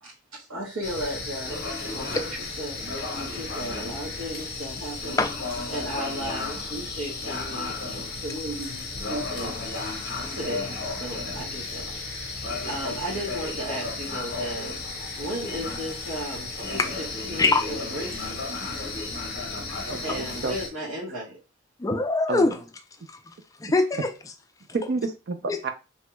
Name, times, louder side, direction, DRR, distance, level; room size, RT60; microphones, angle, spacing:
voice 1, 0.0-2.8 3.1-5.2 5.7-9.9 10.3-14.9 15.2-18.4 20.0-21.4, right 1 dB, 90° right, 1.1 m, -35 dB
sound 1, 0.8-20.7, left 3 dB, 50° left, 0.7 m, -33 dB
voice 2, 19.9-20.6 22.3-22.5 24.7-25.7, right 3 dB, 55° right, 0.4 m, -29 dB
voice 3, 21.8-22.6 23.1-23.2 23.6-24.1 25.5-25.6, left 3 dB, 15° left, 0.3 m, -23 dB
3.0 x 2.2 x 3.0 m
head